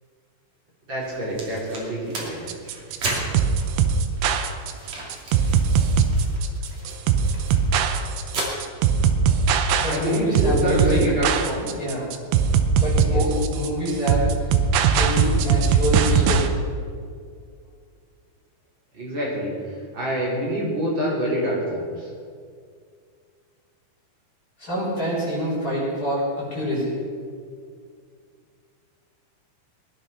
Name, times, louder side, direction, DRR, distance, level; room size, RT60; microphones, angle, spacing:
voice 1, 0.9-2.3 9.8-11.7 13.1-13.2 18.9-19.5 19.9-22.1, right 1 dB, 25° right, -5 dB, 4.3 m, -26 dB
Paper Tear, 1.0-8.4, right 2 dB, 40° right, 3.1 m, -35 dB
sound 1, 2.5-16.5, right 6 dB, 75° right, 2.6 m, -20 dB
voice 2, 9.8-11.0 11.8-12.1 12.7-14.5 14.9-16.5 24.6-26.9, equal, 20° left, -6 dB, 5.5 m, -26 dB
20.0 x 11.0 x 5.9 m, 2.1 s
omnidirectional pair, 5.9 m